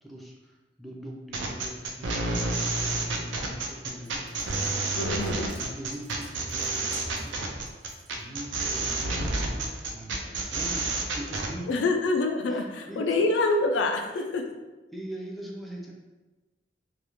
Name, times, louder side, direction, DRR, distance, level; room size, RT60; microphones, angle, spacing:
voice 1, 0.0-2.4 2.8-5.0 5.6-7.5 8.1-11.8 12.5-13.3 14.9-15.9, right 1 dB, ahead, -3 dB, 0.3 m, -42 dB
sound 1, 1.3-11.5, right 2 dB, 85° right, 0.4 m, -29 dB
sound 2, 4.0-8.2, right 1 dB, 55° right, 0.9 m, -51 dB
voice 2, 4.9-5.5 11.7-14.4, left 3 dB, 85° left, 4 dB, 0.3 m, -26 dB
2.4 x 2.1 x 2.9 m, 1.2 s
head